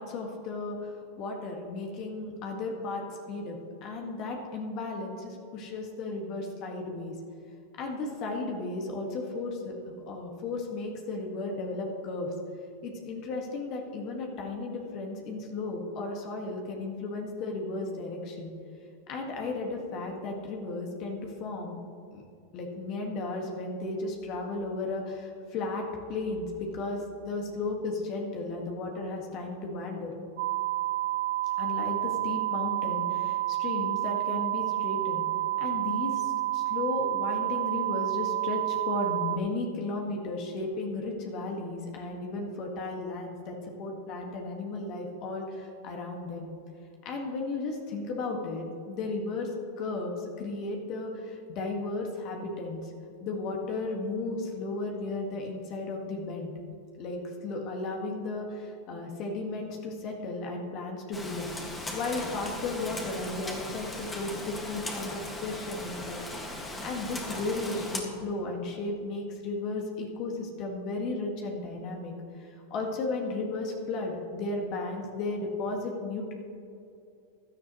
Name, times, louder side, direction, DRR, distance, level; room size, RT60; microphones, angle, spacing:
voice 1, 0.0-7.1 7.7-9.8 10.1-12.3 12.8-18.5 19.1-21.8 22.1-22.2 22.5-30.1 31.6-35.2 35.6-46.5 47.0-52.9 53.2-56.5 57.0-61.5 61.9-66.2 66.5-76.3, left 3 dB, 45° left, 1 dB, 1.8 m, -34 dB
sound 1, 30.4-39.4, right 15 dB, 70° right, 0.8 m, -29 dB
Rain, 61.1-68.0, left 1 dB, 15° left, 1.8 m, -38 dB
16.0 x 10.5 x 3.1 m, 2.6 s
hypercardioid pair, 105°, 0 cm